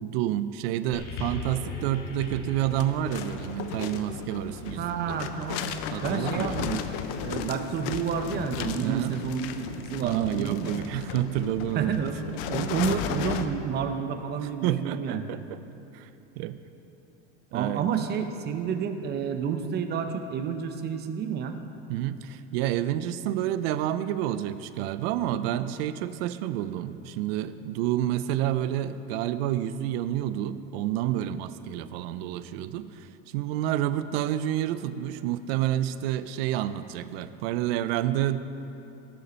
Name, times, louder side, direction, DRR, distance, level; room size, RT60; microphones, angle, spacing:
voice 1, 0.0-5.2 5.9-6.6 8.8-9.2 10.0-12.0 14.6-15.6 15.9-16.1 16.4-16.6 17.5-17.8 21.9-33.1 33.3-38.4, right 12 dB, 60° right, 13 dB, 0.6 m, -29 dB
sound 1, 0.9-5.5 6.3-6.4, left 2 dB, 40° left, 2.0 m, -40 dB
sound 2, 2.6-13.5, left 9 dB, 60° left, 0.7 m, -35 dB
voice 2, 4.8-5.6 6.0-6.8 7.2-10.7 11.7-15.3 17.5-21.6, right 7 dB, 30° right, 7 dB, 0.8 m, -30 dB
17.5 x 6.8 x 4.3 m, 2.9 s
supercardioid pair, 135°, 33 cm